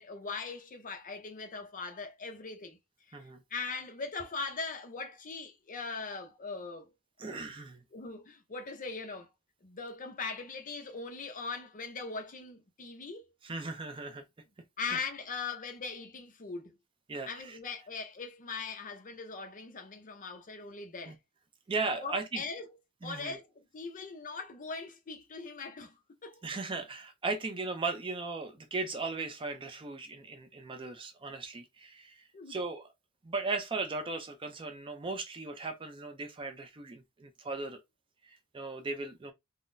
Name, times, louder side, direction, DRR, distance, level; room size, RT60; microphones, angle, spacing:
voice 1, 0.0-2.8 3.5-6.9 7.2-7.4 7.9-9.3 9.6-13.3 14.8-16.8 17.3-21.2 22.0-22.7 23.0-26.4 32.3-32.6, left 4 dB, 35° left, 0.6 m, -40 dB
voice 2, 7.2-7.8 13.4-14.3 14.9-15.0 17.1-17.6 21.1-21.2 21.7-22.4 23.0-23.3 26.4-32.9 33.2-37.8 38.2-39.3, right 3 dB, 25° right, 0.4 m, -37 dB
3.8 x 2.0 x 2.5 m
head